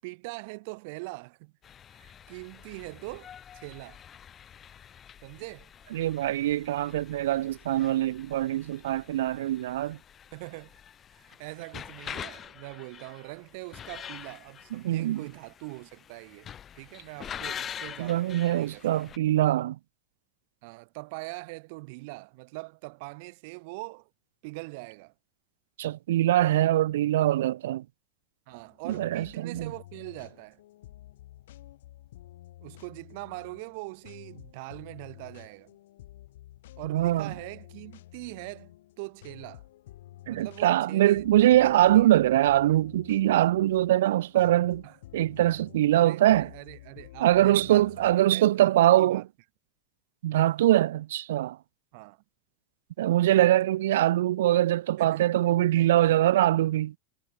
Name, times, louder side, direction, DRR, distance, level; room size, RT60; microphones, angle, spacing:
voice 1, 0.0-1.5 2.0-4.0 5.2-5.7 10.3-10.8 11.2-18.9 20.6-24.1 24.4-25.1 28.5-30.6 32.6-35.7 36.8-39.6 40.3-42.1 44.8-45.0 45.9-49.2 51.9-52.2 53.3-53.8 55.0-56.2, right 28 dB, 60° right, 6.4 m, -42 dB
sound 1, 1.6-19.2, left 9 dB, 25° left, 3.7 m, -45 dB
voice 2, 5.9-10.0 14.7-15.3 18.0-19.8 25.8-27.8 28.9-29.7 36.8-37.3 40.3-44.8 45.1-46.5 47.2-49.2 50.2-51.6 53.0-56.9, right 14 dB, 90° right, 0.6 m, -23 dB
sound 2, 28.5-48.2, left 15 dB, 85° left, 7.8 m, -50 dB
supercardioid pair, 140°, 0 cm